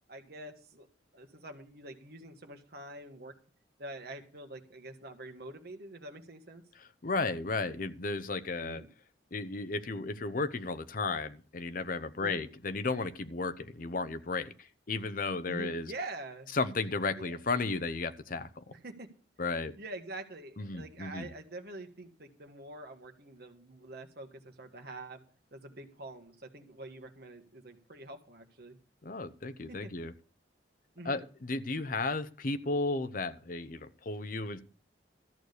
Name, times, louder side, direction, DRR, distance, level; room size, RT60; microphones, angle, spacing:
voice 1, 0.1-0.9 1.1-3.3 3.8-6.6 8.6-8.9 12.2-12.5 15.5-16.5 17.1-17.4 18.7-19.1 19.8-25.2 25.5-28.8 29.7-29.9 30.9-31.2, right 2 dB, 60° right, 5 dB, 1.7 m, -45 dB
voice 2, 6.8-8.8 9.3-15.9 16.5-18.6 19.4-19.7 20.6-21.3 29.0-30.1 31.0-34.6, left 3 dB, 50° left, 11 dB, 0.8 m, -34 dB
13.5 x 6.4 x 6.7 m, 0.41 s
head